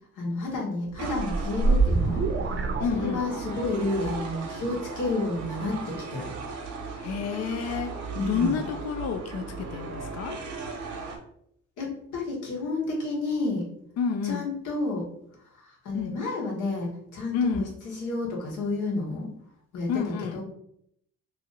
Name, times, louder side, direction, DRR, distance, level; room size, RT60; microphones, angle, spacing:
voice 1, 0.2-2.2 2.9-6.3 8.1-8.6 11.8-13.6 14.2-15.1 15.5-19.3 19.7-20.4, left 2 dB, 80° left, -3 dB, 1.3 m, -30 dB
sound 1, 0.9-3.6, right 3 dB, 40° right, 0.6 m, -25 dB
sound 2, 1.0-11.2, right 4 dB, 75° right, 0.9 m, -37 dB
voice 2, 2.8-3.3 7.0-10.4 14.0-14.5 15.9-16.2 17.3-17.8 19.9-20.4, left 6 dB, 55° left, 6 dB, 0.4 m, -29 dB
2.9 x 2.6 x 3.9 m, 0.70 s
cardioid pair, 90°, 30 cm